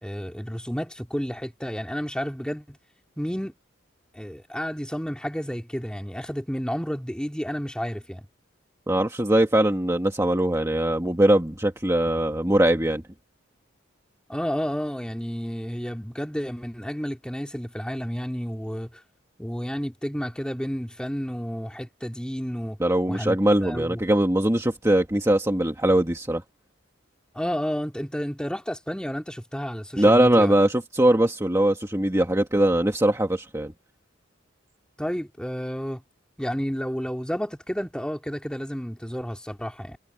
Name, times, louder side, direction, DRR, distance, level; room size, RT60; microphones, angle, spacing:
voice 1, 0.0-2.8 3.2-3.5 4.1-8.3 14.3-18.9 19.4-22.8 23.1-23.4 23.6-24.0 27.3-30.5 35.0-36.0 36.4-40.0, equal, 5° left, 3.2 m, -31 dB
voice 2, 8.9-13.0 22.8-26.4 30.0-33.7, right 1 dB, 15° right, 1.7 m, -21 dB
head